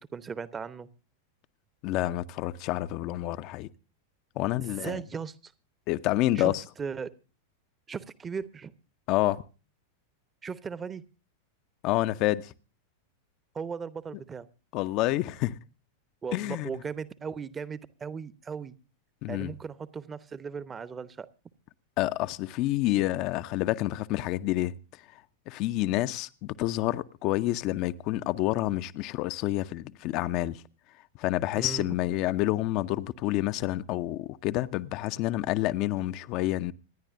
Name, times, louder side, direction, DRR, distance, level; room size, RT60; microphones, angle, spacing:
voice 1, 0.1-0.9 4.4-5.5 6.3-7.1 7.9-8.7 10.4-11.0 13.5-14.5 16.2-18.8 19.3-21.3 23.0-23.1 31.6-32.0, right 6 dB, 20° right, 0.9 m, -37 dB
voice 2, 1.8-3.7 4.4-5.0 5.9-6.6 9.1-9.4 11.8-12.5 14.7-15.6 16.3-16.7 19.2-19.5 22.0-24.7 25.5-30.6 31.2-36.7, left 16 dB, 40° left, 0.6 m, -28 dB
26.5 x 10.5 x 2.5 m
figure-of-eight pair, 90°, 0 cm